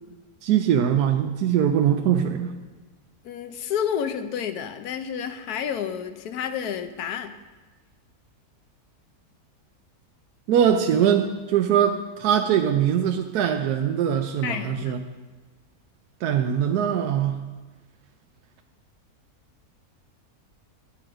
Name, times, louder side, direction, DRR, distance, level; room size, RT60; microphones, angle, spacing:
voice 1, 0.4-2.5 10.5-15.0 16.2-17.4, right 9 dB, 85° right, 5 dB, 1.1 m, -22 dB
voice 2, 3.2-7.3 14.4-14.9, left 8 dB, 80° left, 9 dB, 1.2 m, -30 dB
10.5 x 7.7 x 4.8 m, 1.3 s
omnidirectional pair, 1.6 m